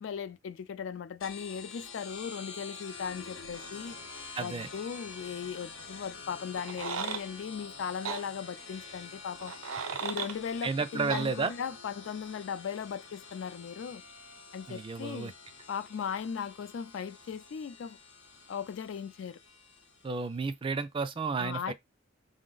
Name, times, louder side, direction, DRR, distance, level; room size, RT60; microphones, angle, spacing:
voice 1, 0.0-4.0 4.4-9.5 10.0-14.0 14.5-15.3 15.7-18.0 18.5-19.4 21.4-21.7, left 7 dB, 60° left, 0.3 m, -38 dB
sound 1, 1.2-20.4, left 4 dB, 85° left, 0.8 m, -47 dB
voice 2, 4.4-4.7 10.6-11.5 14.7-15.3 20.0-21.7, right 4 dB, 25° right, 0.3 m, -32 dB
sound 2, 6.6-7.2 8.0-8.2 9.4-10.4 11.1-11.3, right 6 dB, 85° right, 0.5 m, -35 dB
5.2 x 2.1 x 3.8 m
head